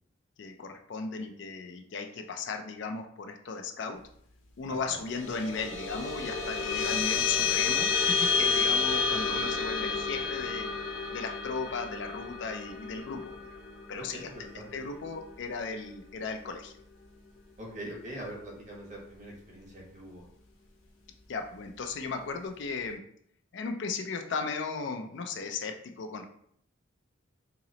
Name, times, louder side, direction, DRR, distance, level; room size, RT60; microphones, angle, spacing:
voice 1, 0.4-4.0 4.6-10.7 11.1-13.5 13.9-14.3 14.7-16.7 21.3-23.0 23.5-26.3, left 4 dB, 65° left, 5 dB, 0.4 m, -36 dB
voice 2, 4.7-5.0 8.9-9.4 14.0-14.8 17.6-20.3, right 1 dB, 40° right, -2 dB, 1.1 m, -43 dB
sound 1, 5.0-15.8, left 5 dB, 90° left, 0.9 m, -30 dB
2.9 x 2.9 x 3.8 m, 0.66 s
head